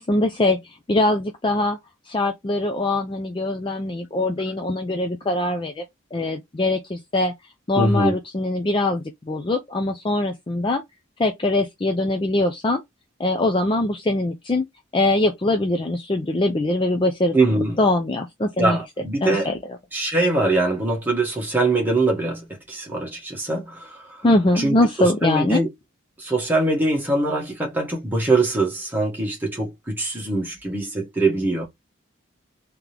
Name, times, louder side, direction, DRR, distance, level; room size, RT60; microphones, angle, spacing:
voice 1, 0.0-1.8 2.1-5.8 6.1-7.3 7.7-10.8 11.2-12.8 13.2-14.7 14.9-17.4 17.8-18.8 19.2-19.6 24.2-25.6, left 2 dB, 25° left, 0.4 m, -22 dB
voice 2, 7.8-8.1 17.3-17.8 18.6-19.5 19.9-24.2 24.6-25.7 26.2-31.6, right 2 dB, 10° right, 1.5 m, -23 dB
3.7 x 2.9 x 3.2 m
head